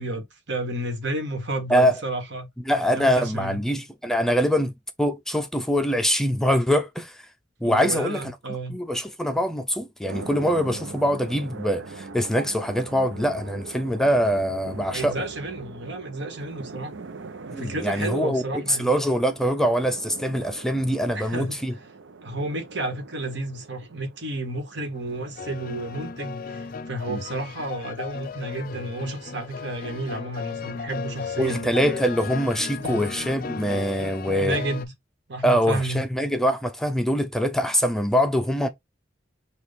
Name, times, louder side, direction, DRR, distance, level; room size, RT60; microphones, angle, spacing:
voice 1, 0.0-2.5 2.9-3.6 7.6-8.8 14.9-16.9 17.5-18.9 21.1-21.6 22.2-31.7 32.8-33.1 34.4-34.9 35.3-36.0, right 2 dB, 65° right, 1.6 m, -31 dB
voice 2, 2.7-4.7 5.0-7.2 7.6-8.2 8.7-15.2 17.5-21.7 27.1-27.2 31.4-34.6 35.4-38.7, equal, 5° left, 0.4 m, -23 dB
sound 1, 10.1-26.9, right 4 dB, 80° right, 0.7 m, -41 dB
sound 2, 24.9-34.8, left 5 dB, 50° left, 0.5 m, -35 dB
6.3 x 2.4 x 3.5 m
head